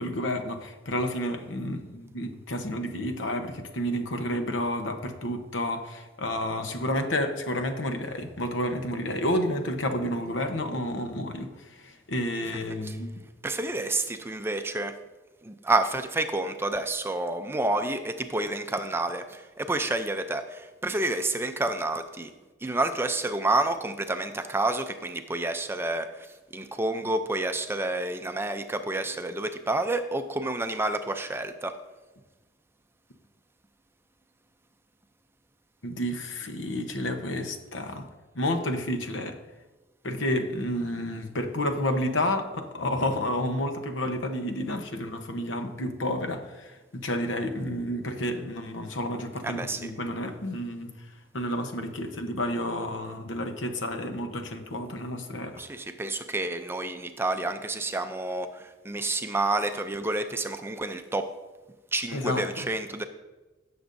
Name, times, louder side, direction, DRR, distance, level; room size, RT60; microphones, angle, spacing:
voice 1, 0.0-13.2 35.8-38.1 38.3-39.4 40.0-51.1 51.3-55.6 62.1-62.7, left 1 dB, 75° left, 6 dB, 1.0 m, -30 dB
voice 2, 13.4-15.0 15.4-22.3 22.6-26.3 26.5-31.8 49.4-49.9 55.6-61.3 61.9-63.0, right 2 dB, 15° right, 8 dB, 0.5 m, -29 dB
16.5 x 7.0 x 2.6 m, 1.2 s
head